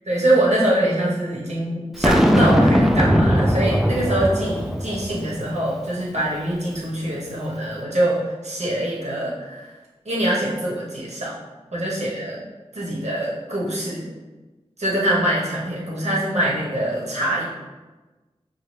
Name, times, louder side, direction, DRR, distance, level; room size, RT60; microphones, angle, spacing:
voice 1, 0.1-9.7 10.0-11.4 11.7-12.4 12.7-14.1 14.8-17.4, right 1 dB, 85° right, -6 dB, 1.1 m, -24 dB
Boom, 2.0-5.3, equal, 5° right, 0.3 m, -18 dB
5.6 x 2.3 x 3.2 m, 1.2 s
wide cardioid pair, 65°, 11 cm